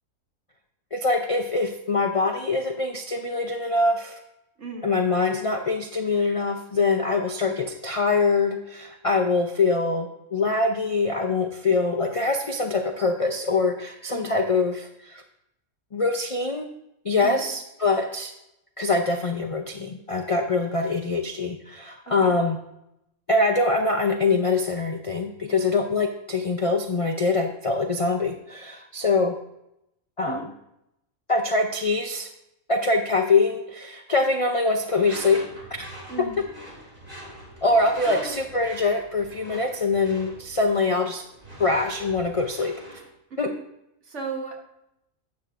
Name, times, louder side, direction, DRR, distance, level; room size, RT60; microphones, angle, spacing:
voice 1, 0.9-4.1 4.8-15.2 15.9-16.7 17.0-18.3 18.8-22.6 23.3-29.4 30.2-30.4 31.3-32.3 32.7-35.4 37.6-41.2 41.6-42.7 43.4-43.5, left 3 dB, 45° left, 4 dB, 0.4 m, -24 dB
voice 2, 4.6-4.9 14.1-14.3 17.2-17.4 22.0-22.3 30.3-30.5 36.1-36.4 38.1-38.4 43.3-43.6 44.0-44.7, right 4 dB, 60° right, 2 dB, 1.6 m, -35 dB
Door / Screech, 34.9-43.1, equal, 40° right, 2.4 m, -43 dB
12.5 x 8.5 x 2.5 m, 0.84 s
omnidirectional pair, 1.4 m